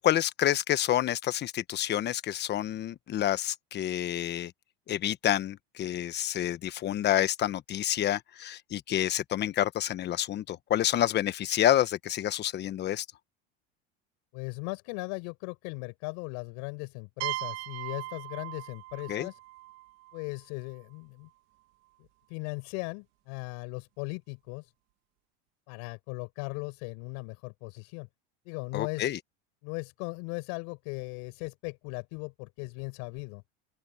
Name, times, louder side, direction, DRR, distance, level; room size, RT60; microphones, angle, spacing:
voice 1, 0.0-4.5 4.9-13.0 19.1-19.3 28.7-29.2, left 12 dB, 35° left, 1.1 m, -28 dB
voice 2, 14.3-19.4 20.1-21.3 22.3-24.7 25.7-28.1 28.5-29.1 29.6-33.4, left 34 dB, 65° left, 7.5 m, -38 dB
sound 1, 17.2-20.8, right 19 dB, 60° right, 1.5 m, -39 dB
open air
supercardioid pair, 130°, 30 cm